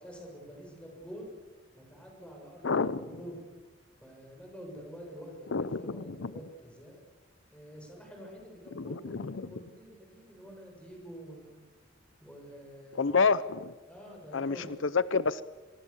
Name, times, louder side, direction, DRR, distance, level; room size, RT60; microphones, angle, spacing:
voice 1, 0.0-1.3 1.8-3.4 4.0-7.0 7.5-11.6 12.2-13.1 13.9-14.8, equal, 5° left, 0 dB, 7.1 m, -47 dB
voice 2, 2.6-3.0 5.5-5.8 6.1-6.3 8.8-9.4 13.0-13.7 14.3-15.4, left 4 dB, 75° left, 16 dB, 0.7 m, -28 dB
24.5 x 23.5 x 7.3 m, 1.4 s
head